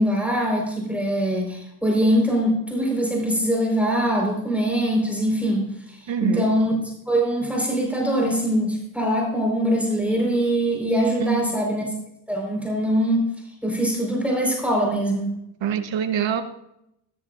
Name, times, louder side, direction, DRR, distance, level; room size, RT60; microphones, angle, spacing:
voice 1, 0.0-5.7 6.0-6.7 7.1-11.9 12.3-13.2 13.6-15.3, equal, 5° right, -1 dB, 4.5 m, -22 dB
voice 2, 6.1-6.5 11.2-11.6 15.6-16.4, right 9 dB, 65° right, 8 dB, 1.3 m, -25 dB
13.5 x 13.5 x 2.6 m, 0.82 s
cardioid pair, 65°, 47 cm